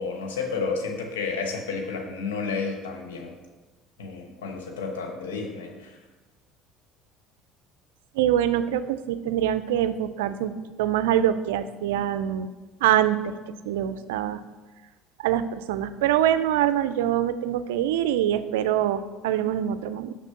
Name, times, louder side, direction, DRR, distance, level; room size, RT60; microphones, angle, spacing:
voice 1, 0.0-3.3 4.0-6.0, left 4 dB, 90° left, 2 dB, 1.1 m, -31 dB
voice 2, 8.2-12.5 12.8-13.3 13.7-14.4 15.2-20.1, right 11 dB, 85° right, 12 dB, 0.3 m, -24 dB
6.0 x 3.5 x 5.7 m, 1.2 s
hypercardioid pair, 75°, 0 cm